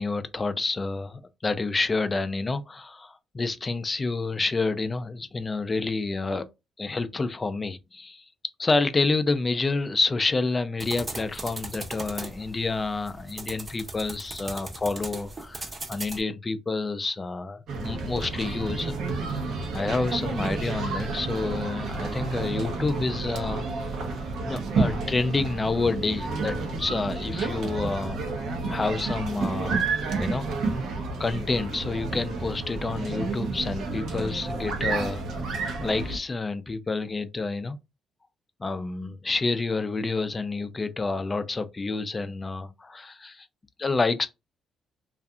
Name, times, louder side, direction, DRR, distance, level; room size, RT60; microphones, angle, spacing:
voice 1, 0.0-6.5 6.8-8.2 8.6-19.0 19.7-23.6 24.4-28.2 28.7-30.5 31.2-35.2 35.8-37.8 38.6-43.5 43.8-44.3, left 3 dB, 25° left, 0.4 m, -28 dB
sound 1, 10.8-16.2, right 2 dB, 30° right, 0.6 m, -38 dB
sound 2, 17.7-36.2, right 3 dB, 75° right, 0.7 m, -30 dB
2.6 x 2.4 x 2.3 m
cardioid pair, 90°, 0 cm